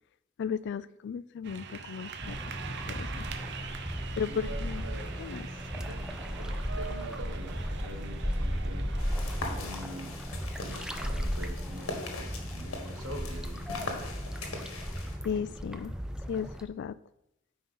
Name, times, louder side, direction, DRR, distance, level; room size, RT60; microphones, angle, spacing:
voice 1, 0.4-2.4 2.9-3.3 4.2-4.9 5.2-5.5 5.7-5.9 15.2-15.9 16.3-17.0, left 7 dB, 55° left, 16 dB, 0.3 m, -35 dB
sound 1, 1.4-9.4, right 5 dB, 55° right, 0.7 m, -43 dB
sound 2, 2.2-16.6, equal, 5° right, 0.5 m, -36 dB
voice 2, 4.1-5.2 5.9-8.9 9.5-10.3 10.6-14.3, right 1 dB, 75° right, 4 dB, 1.3 m, -45 dB
sound 3, 9.0-15.2, left 2 dB, 85° left, 1.6 m, -41 dB
9.4 x 4.4 x 5.5 m, 0.85 s
head